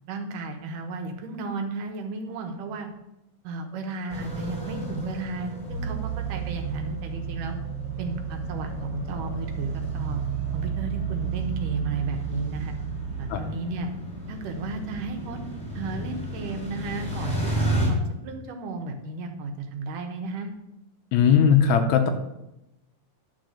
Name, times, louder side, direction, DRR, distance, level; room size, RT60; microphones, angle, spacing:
voice 1, 0.1-2.9 3.4-7.6 8.0-10.2 10.5-12.7 13.2-13.9 14.3-15.4 15.8-20.5, right 3 dB, 90° right, 4 dB, 2.7 m, -34 dB
sound 1, 4.1-17.9, right 1 dB, ahead, 3.7 m, -34 dB
sound 2, 5.7-13.3, right 8 dB, 60° right, 1.2 m, -32 dB
voice 2, 21.1-22.1, left 7 dB, 75° left, 6 dB, 1.9 m, -18 dB
10.5 x 4.7 x 6.4 m, 0.90 s
omnidirectional pair, 3.6 m